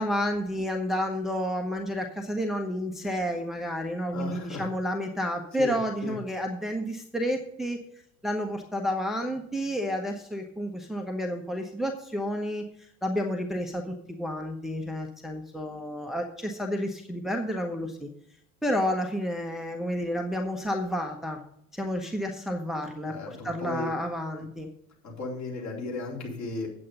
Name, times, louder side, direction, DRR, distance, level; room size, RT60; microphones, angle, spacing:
voice 1, 0.0-7.8 8.2-13.8 14.1-18.1 18.6-21.4 21.7-24.7, equal, ahead, 2 dB, 1.0 m, -30 dB
voice 2, 4.1-4.7 5.6-5.7 6.0-6.1 23.0-23.9 25.0-26.8, left 3 dB, 45° left, -2 dB, 4.0 m, -35 dB
8.7 x 8.6 x 5.3 m, 0.74 s
figure-of-eight pair, 70°, 41 cm